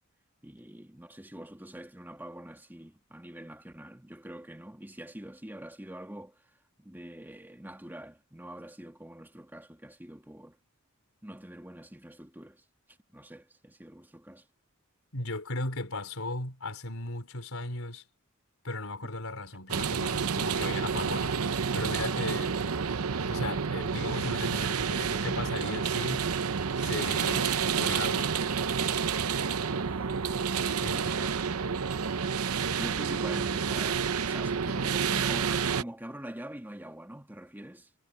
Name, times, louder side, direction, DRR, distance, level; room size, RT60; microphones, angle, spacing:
voice 1, 0.4-6.5 6.8-10.6 11.2-14.5 29.7-30.1 30.9-31.3 32.7-37.9, right 1 dB, 10° right, 1.9 m, -44 dB
voice 2, 15.1-18.0 18.6-22.6 23.2-26.2 26.7-28.3 30.8-31.0, left 2 dB, 75° left, 3.9 m, -37 dB
sound 1, 19.7-35.8, right 6 dB, 85° right, 0.8 m, -29 dB
head